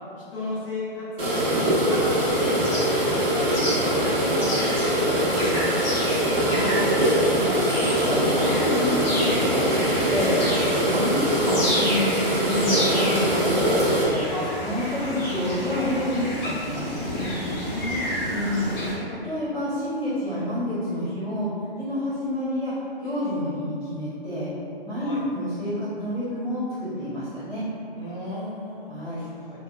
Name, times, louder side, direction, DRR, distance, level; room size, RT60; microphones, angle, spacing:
voice 1, 0.3-6.0 14.3-14.6 14.9-15.3 17.6-18.6 20.3-20.4 25.0-25.2 27.9-29.6, left 1 dB, 65° left, -8 dB, 1.0 m, -35 dB
sound 1, 1.2-14.0, right 1 dB, 65° right, 1.0 m, -23 dB
sound 2, 2.3-18.9, left 1 dB, 45° left, 1.0 m, -30 dB
voice 2, 6.4-6.9 7.3-10.4 10.7-14.3 14.6-17.3 18.3-18.7 19.1-21.5 21.8-22.7 23.0-24.5 24.8-27.6 28.9-29.2, left 1 dB, 5° right, -20 dB, 0.6 m, -29 dB
2.9 x 2.0 x 2.3 m, 2.5 s
hypercardioid pair, 155°, 30 cm